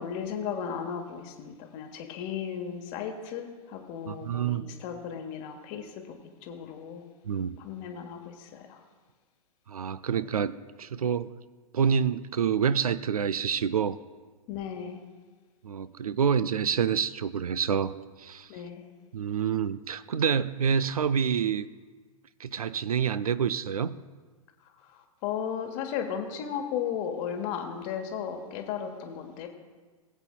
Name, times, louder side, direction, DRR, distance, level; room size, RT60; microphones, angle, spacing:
voice 1, 0.0-7.0 7.6-8.8 14.5-15.0 18.5-18.8 24.9-29.5, left 8 dB, 35° left, 5 dB, 1.3 m, -35 dB
voice 2, 4.1-4.6 7.3-7.6 9.7-11.3 11.7-14.0 15.6-17.9 18.2-18.5 19.1-21.7 22.4-23.9, right 7 dB, 75° right, 15 dB, 0.5 m, -27 dB
19.0 x 8.2 x 2.3 m, 1.4 s
figure-of-eight pair, 110°, 19 cm